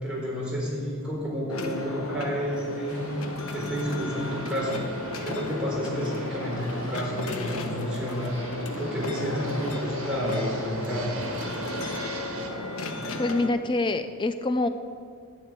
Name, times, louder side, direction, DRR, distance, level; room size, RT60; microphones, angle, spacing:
voice 1, 0.0-3.2 3.5-4.8 5.2-8.4 8.8-11.2, equal, 5° right, -7 dB, 3.9 m, -30 dB
sound 1, 1.5-13.5, left 2 dB, 75° left, 1.0 m, -35 dB
Fixed-wing aircraft airplane, 2.9-12.5, right 1 dB, 65° right, 1.7 m, -41 dB
voice 2, 13.0-14.7, left 2 dB, 20° left, 10 dB, 0.3 m, -26 dB
11.5 x 6.4 x 9.1 m, 2.2 s
head